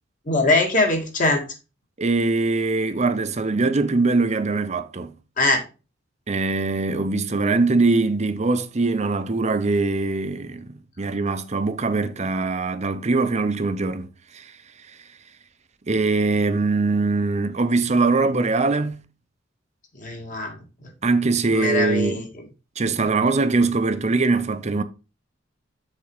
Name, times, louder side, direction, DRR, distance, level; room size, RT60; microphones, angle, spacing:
voice 1, 0.3-1.4 5.4-5.6 20.0-20.6 21.5-22.2, left 2 dB, 45° left, 2.0 m, -21 dB
voice 2, 2.0-5.1 6.3-14.1 14.3-14.5 15.9-19.0 21.0-22.2 22.8-24.8, right 3 dB, 35° right, 0.7 m, -22 dB
7.2 x 4.2 x 4.8 m
head